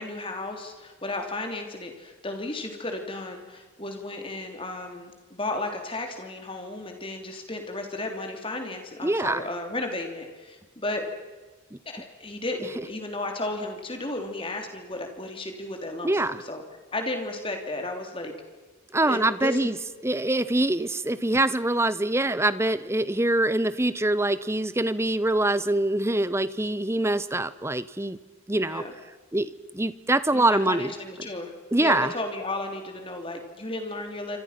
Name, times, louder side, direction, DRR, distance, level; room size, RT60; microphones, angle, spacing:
voice 1, 0.0-11.0 11.8-16.6 16.9-18.3 19.0-19.7 28.5-28.9 30.3-31.5 31.8-34.4, left 2 dB, 25° left, 4 dB, 3.3 m, -34 dB
voice 2, 9.0-9.4 11.7-11.8 16.0-16.4 18.9-19.7 20.0-28.2 28.5-28.8 29.3-30.9 31.7-32.1, right 2 dB, 10° right, 15 dB, 0.8 m, -24 dB
27.5 x 25.5 x 5.9 m, 1.3 s
head